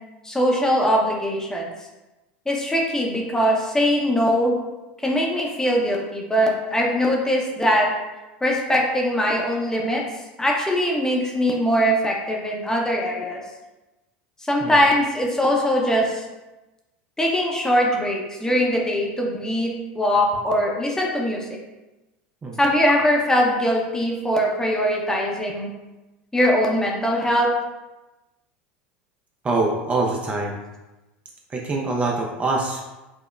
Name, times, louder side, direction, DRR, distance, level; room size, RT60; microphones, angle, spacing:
voice 1, 0.2-1.7 2.5-4.6 5.0-7.9 8.4-10.0 10.4-13.4 14.4-16.2 17.2-21.5 22.6-25.7 26.3-27.5, equal, 10° left, -1 dB, 0.7 m, -21 dB
voice 2, 29.4-30.6 31.5-32.8, right 3 dB, 25° right, -1 dB, 0.5 m, -24 dB
5.0 x 2.0 x 2.4 m, 1.1 s
hypercardioid pair, 90°, 5 cm